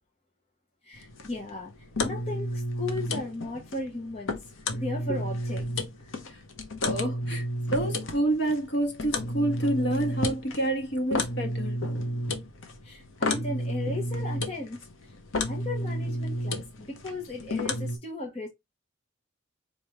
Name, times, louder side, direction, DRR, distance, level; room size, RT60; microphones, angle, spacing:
voice 1, 0.8-4.3 4.6-6.1 12.8-15.1 15.4-18.5, left 2 dB, 30° left, 1.0 m, -36 dB
sound 1, 0.9-18.0, left 1 dB, 75° left, 0.9 m, -32 dB
voice 2, 6.8-7.4 7.7-11.8, right 1 dB, 55° left, 1.4 m, -28 dB
5.0 x 2.6 x 2.9 m
head